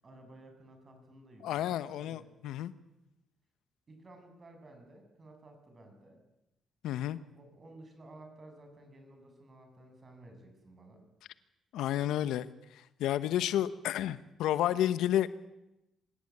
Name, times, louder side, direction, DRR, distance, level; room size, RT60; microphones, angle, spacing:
voice 1, 0.0-2.4 3.9-6.2 7.3-11.0, right 1 dB, 35° right, 5 dB, 7.9 m, -54 dB
voice 2, 1.4-2.7 6.8-7.2 11.7-15.3, left 12 dB, 85° left, 14 dB, 1.0 m, -31 dB
24.5 x 16.5 x 9.9 m, 0.91 s
cardioid pair, 90°, 0 cm